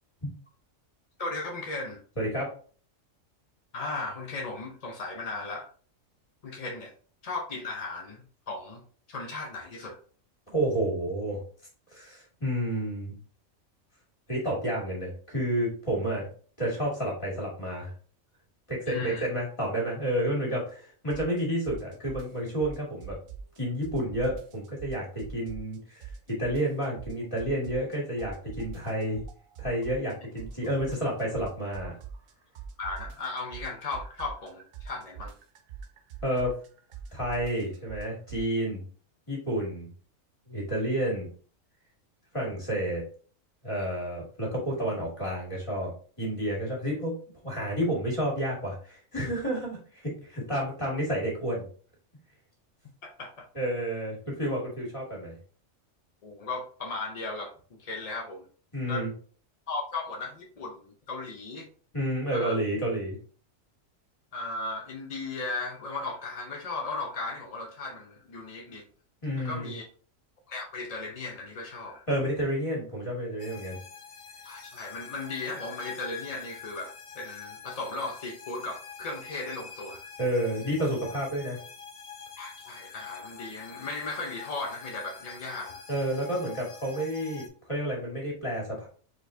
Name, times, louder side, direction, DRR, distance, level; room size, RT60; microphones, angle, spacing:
voice 1, 1.2-2.0 3.7-5.7 6.4-6.9 7.2-8.8 9.1-10.0 18.9-19.3 32.8-35.3 53.0-53.5 56.2-58.5 58.9-59.1 59.7-61.7 62.3-62.6 64.3-68.9 69.4-69.8 70.5-72.1 74.4-80.1 82.4-85.9, left 3 dB, 50° left, 1 dB, 0.4 m, -36 dB
voice 2, 2.2-2.6 10.5-11.4 11.9-13.2 14.3-16.3 16.6-17.9 18.7-23.2 23.6-29.2 29.6-32.0 36.2-36.5 37.1-38.8 39.3-39.9 40.5-41.3 42.3-43.0 43.6-45.9 46.2-47.1 47.4-51.7 53.5-55.3 58.7-59.1 61.9-63.2 69.2-69.7 72.1-73.8 80.2-81.6 85.9-88.9, right 1 dB, 25° left, -3 dB, 2.1 m, -30 dB
sound 1, 21.1-21.4 21.6-23.6 23.8-25.8 26.0-27.9 28.2-32.3 32.5-38.5, right 6 dB, 75° right, 1.1 m, -42 dB
sound 2, 73.4-87.5, left 6 dB, 75° left, 1.5 m, -46 dB
4.7 x 4.1 x 2.6 m, 0.42 s
omnidirectional pair, 1.4 m